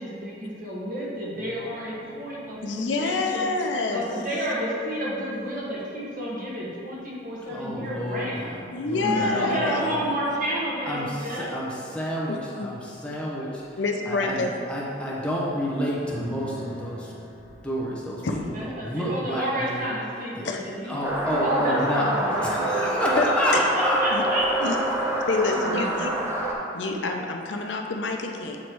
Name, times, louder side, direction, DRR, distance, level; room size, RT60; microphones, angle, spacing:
voice 1, 0.0-3.5 3.9-8.5 9.2-11.5 18.5-20.9 21.2-22.9 23.7-24.5 25.4-26.2, equal, 50° right, -6 dB, 1.5 m, -31 dB
sound 1, 1.3-7.1 7.6-7.9 8.6-8.7 8.9-15.0 16.0-18.6, equal, 75° right, 1.5 m, -41 dB
voice 2, 2.6-4.0 8.7-9.8 12.3-12.7 13.8-14.5 16.5-16.6 18.2-18.5 20.4-20.6 23.2-23.3 23.5-23.7 24.1-24.2 24.6-24.8 25.3-26.4 26.7-28.6, left 3 dB, 75° left, 3 dB, 0.6 m, -27 dB
voice 3, 7.5-10.0 10.9-14.4 14.7-17.1 17.6-18.2 18.6-19.8 20.4-20.5 20.8-22.1 22.4-24.7 25.0-25.1, equal, 5° left, -6 dB, 1.0 m, -29 dB
sound 2, 21.0-26.5, right 1 dB, 15° right, 0.7 m, -27 dB
8.4 x 3.1 x 4.6 m, 2.7 s
head